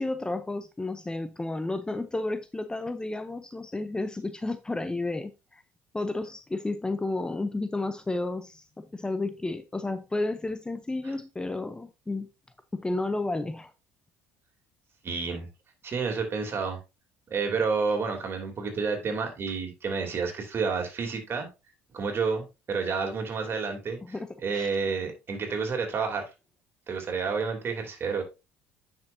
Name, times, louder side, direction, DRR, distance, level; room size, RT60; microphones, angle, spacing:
voice 1, 0.0-5.6 5.9-12.3 12.7-13.7 24.0-24.7, left 2 dB, 15° left, 0.6 m, -32 dB
voice 2, 15.0-15.5 15.8-16.8 17.3-21.5 21.9-24.2 24.4-26.3 26.9-28.2, right 5 dB, 40° right, 3.0 m, -30 dB
9.5 x 6.1 x 2.7 m
hypercardioid pair, 70°, 6 cm